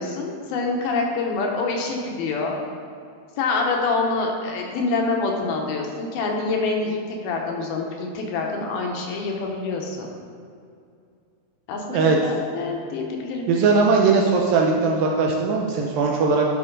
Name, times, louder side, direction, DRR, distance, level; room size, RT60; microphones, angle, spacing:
voice 1, 0.0-2.6 3.4-10.1 11.7-13.5, left 3 dB, 75° left, 1 dB, 2.6 m, -26 dB
voice 2, 13.5-16.5, right 4 dB, 75° right, 0 dB, 2.2 m, -19 dB
10.5 x 6.2 x 3.9 m, 2.4 s
omnidirectional pair, 4.6 m